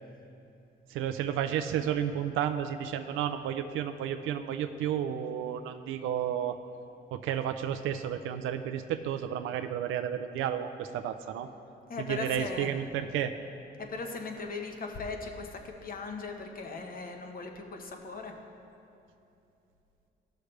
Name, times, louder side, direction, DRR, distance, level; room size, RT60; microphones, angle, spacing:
voice 1, 0.9-6.6 7.1-11.5 12.1-13.3, right 9 dB, 90° right, 7 dB, 0.4 m, -32 dB
voice 2, 11.9-12.8 13.8-18.3, left 4 dB, 45° left, 4 dB, 1.1 m, -38 dB
15.5 x 6.4 x 3.3 m, 2.7 s
cardioid pair, 90°, 20 cm